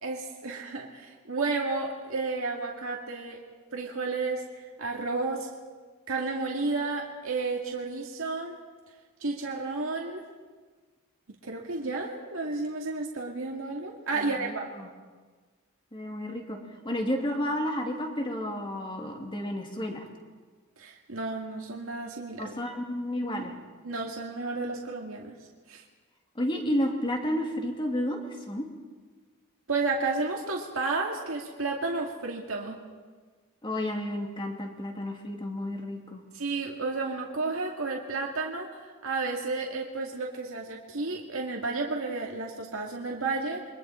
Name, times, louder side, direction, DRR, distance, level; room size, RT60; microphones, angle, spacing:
voice 1, 0.0-3.4 3.7-4.5 4.8-5.5 6.1-8.6 9.2-10.2 11.4-14.7 20.8-22.4 23.8-25.4 25.7-25.8 29.7-32.8 36.3-43.7, right 3 dB, 70° right, -1 dB, 2.1 m, -32 dB
voice 2, 14.1-14.9 15.9-16.6 16.8-20.1 22.4-23.5 26.3-28.7 33.6-36.2, left 1 dB, 20° left, 2 dB, 2.6 m, -31 dB
29.0 x 23.5 x 4.4 m, 1.4 s
head